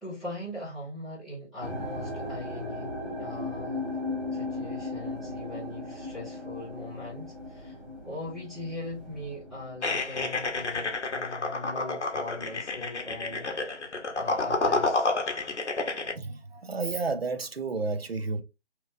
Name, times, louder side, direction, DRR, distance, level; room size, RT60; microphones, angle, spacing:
voice 1, 0.0-3.8 4.3-7.8 8.0-13.5 14.2-15.1, left 2 dB, ahead, 0.7 m, -40 dB
sound 1, 1.6-12.8 13.0-13.7 14.3-14.4, left 2 dB, 25° right, 1.1 m, -38 dB
sound 2, 9.8-16.1, left 3 dB, 70° left, 0.8 m, -30 dB
voice 2, 16.2-18.4, right 3 dB, 60° right, 0.5 m, -31 dB
2.8 x 2.1 x 2.5 m
figure-of-eight pair, 180°, 36 cm